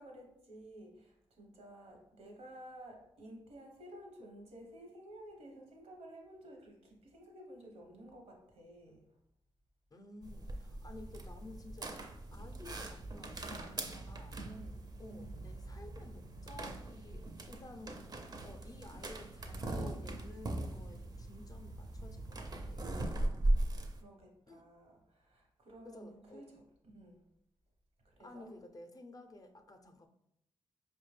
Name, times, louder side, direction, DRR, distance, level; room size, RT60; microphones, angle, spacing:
voice 1, 0.0-9.2 14.4-15.4 23.4-26.6 26.9-27.2 28.0-28.5, right 1 dB, 80° right, 1 dB, 1.0 m, -53 dB
voice 2, 9.9-11.9 12.3-14.4 15.0-18.0 18.4-22.9 24.5-24.6 25.8-26.6 28.2-30.1, left 2 dB, 35° left, 5 dB, 0.4 m, -53 dB
sound 1, 10.2-24.0, right 1 dB, 40° right, 0.5 m, -39 dB
4.8 x 2.1 x 3.2 m, 0.78 s
cardioid pair, 70°, 11 cm